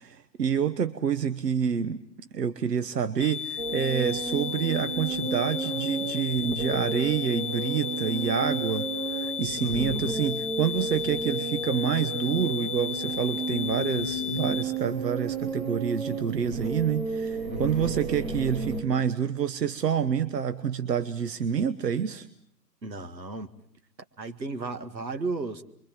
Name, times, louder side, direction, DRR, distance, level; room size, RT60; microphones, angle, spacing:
voice 1, 0.0-2.0 2.3-22.3, right 7 dB, 70° right, 12 dB, 1.2 m, -28 dB
sound 1, 3.2-14.6, left 9 dB, 15° left, 2.9 m, -34 dB
sound 2, 3.6-18.8, right 3 dB, 55° right, 4.3 m, -33 dB
voice 2, 9.6-10.1 17.5-18.0 22.8-23.5 24.2-25.6, right 3 dB, 85° right, 8 dB, 2.0 m, -35 dB
29.0 x 23.5 x 7.5 m, 0.69 s
figure-of-eight pair, 120°, 50 cm